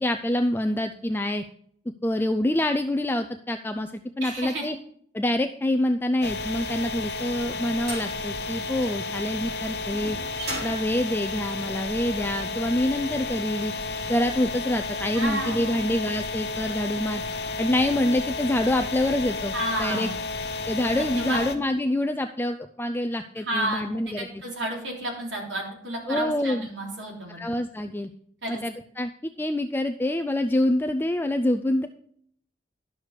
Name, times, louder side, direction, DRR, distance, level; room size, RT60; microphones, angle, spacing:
voice 1, 0.0-1.4 2.0-4.7 5.1-10.2 10.6-13.7 14.1-17.2 17.6-19.5 19.8-20.1 20.7-24.3 26.1-26.7 27.3-28.1 28.5-31.9, left 1 dB, 10° left, 7 dB, 0.3 m, -26 dB
voice 2, 4.2-4.7 15.1-15.9 19.5-20.2 20.9-21.4 23.4-27.4 28.4-28.6, right 1 dB, 85° right, -1 dB, 3.2 m, -31 dB
sound 1, 6.2-21.5, left 3 dB, 60° left, 0.9 m, -32 dB
sound 2, 7.9-12.1, right 1 dB, 60° right, 3.1 m, -39 dB
11.0 x 6.6 x 4.7 m, 0.64 s
head